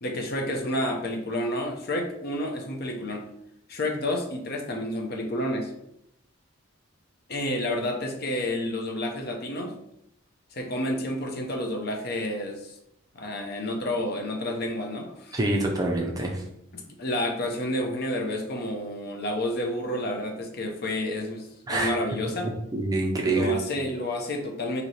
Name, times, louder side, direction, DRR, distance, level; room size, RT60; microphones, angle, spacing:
voice 1, 0.0-3.3 3.7-5.7 7.3-9.8 10.5-12.8 13.1-15.4 16.7-22.5 23.3-24.8, left 1 dB, 50° left, 3 dB, 0.6 m, -30 dB
voice 2, 15.3-16.4 21.7-21.9 22.7-23.5, right 2 dB, 20° right, 0 dB, 0.5 m, -25 dB
3.1 x 2.8 x 4.1 m, 0.78 s
head